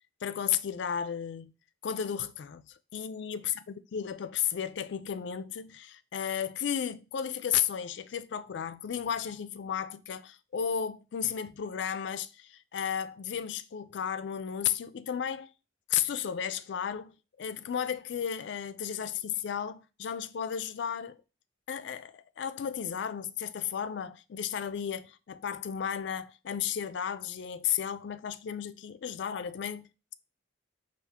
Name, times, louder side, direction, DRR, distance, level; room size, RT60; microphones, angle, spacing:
voice 1, 0.2-1.5 1.8-3.6 3.9-15.5 15.9-21.2 21.7-30.1, left 8 dB, 60° left, 0.3 m, -34 dB
4.6 x 2.4 x 3.5 m
head